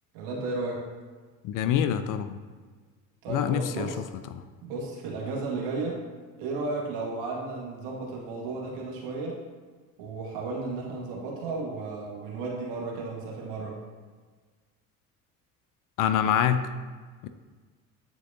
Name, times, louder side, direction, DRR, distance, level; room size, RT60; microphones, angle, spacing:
voice 1, 0.1-0.9 3.2-4.0 4.6-6.0 6.4-9.4 10.0-13.8, right 3 dB, 65° right, -2 dB, 1.8 m, -34 dB
voice 2, 1.4-2.4 3.3-4.0 4.3-4.4 16.0-16.7 17.2-17.3, left 9 dB, 45° left, 11 dB, 0.5 m, -26 dB
9.7 x 4.4 x 2.7 m, 1.5 s
hypercardioid pair, 60°, 45 cm